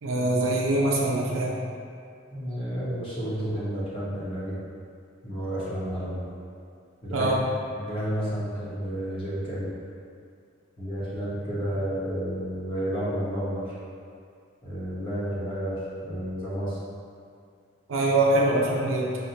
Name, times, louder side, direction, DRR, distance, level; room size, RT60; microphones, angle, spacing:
voice 1, 0.0-1.6 7.1-7.4 17.9-19.1, right 1 dB, 90° right, -2 dB, 0.6 m, -23 dB
voice 2, 2.3-4.6 5.2-6.2 7.0-7.4 7.7-9.7 10.8-13.8 14.6-16.8, equal, 25° left, -9 dB, 0.9 m, -31 dB
5.6 x 2.1 x 2.8 m, 2.3 s
head